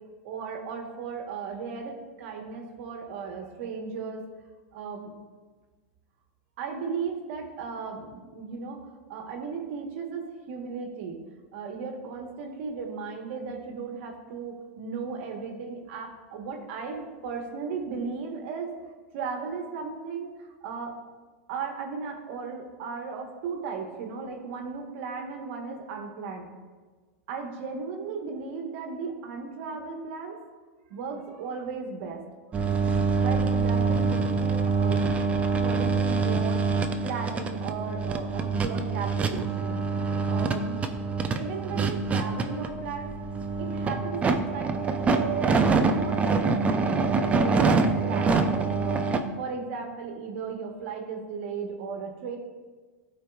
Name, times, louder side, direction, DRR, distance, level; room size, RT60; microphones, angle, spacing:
voice 1, 0.2-4.2 4.7-5.1 6.6-8.8 9.1-11.2 11.5-18.8 19.1-21.0 21.5-26.5 27.3-30.4 30.9-32.2 32.8-36.7 37.0-40.9 41.3-43.1 43.6-52.4, right 5 dB, 65° right, 2 dB, 1.1 m, -36 dB
sound 1, 32.5-49.2, right 4 dB, 20° right, 0.4 m, -25 dB
12.0 x 4.5 x 2.3 m, 1.4 s
supercardioid pair, 135°, 7 cm